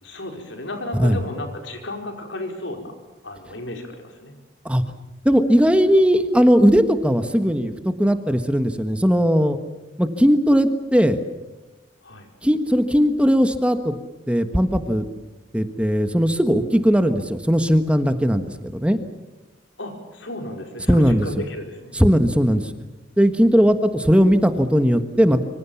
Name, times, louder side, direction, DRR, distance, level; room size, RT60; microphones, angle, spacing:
voice 1, 0.0-2.9 3.2-4.3 12.0-12.3 19.8-21.9, left 1 dB, 85° left, 4 dB, 5.0 m, -33 dB
voice 2, 5.2-9.6 10.0-11.2 12.4-13.9 14.3-15.1 15.5-18.4 18.7-19.0 20.9-21.4 21.9-22.7 23.2-25.4, equal, 5° right, 8 dB, 1.3 m, -18 dB
25.5 x 25.0 x 7.2 m, 1.1 s
head